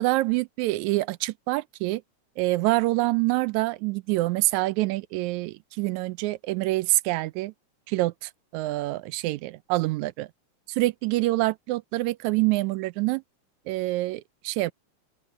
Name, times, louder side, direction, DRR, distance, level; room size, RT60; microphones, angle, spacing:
voice 1, 0.0-2.0 2.4-7.5 7.9-10.3 10.7-13.2 13.7-14.7, right 19 dB, 85° right, 1.9 m, -26 dB
open air
omnidirectional pair, 3.3 m